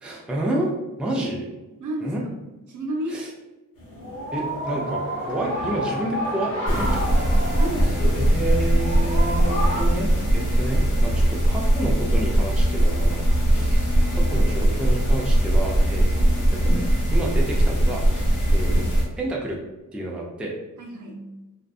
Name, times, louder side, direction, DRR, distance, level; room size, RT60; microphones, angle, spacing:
voice 1, 0.0-0.7 1.0-1.5 2.0-2.2 3.1-3.3 4.3-7.2 8.1-13.2 13.5-16.1 16.3-16.8 17.1-18.8 19.2-19.6 19.9-20.5, right 1 dB, 5° right, -2 dB, 0.3 m, -30 dB
voice 2, 1.8-2.3 2.7-3.2 7.6-8.3 10.4-11.0 20.8-21.3, right 1 dB, 65° right, 1 dB, 0.6 m, -32 dB
sound 1, 3.8-9.8, equal, 90° left, 1.1 m, -30 dB
sound 2, 6.7-19.0, right 1 dB, 65° left, 0.9 m, -20 dB
2.5 x 2.4 x 2.3 m, 1.1 s
wide cardioid pair, 130°, 33 cm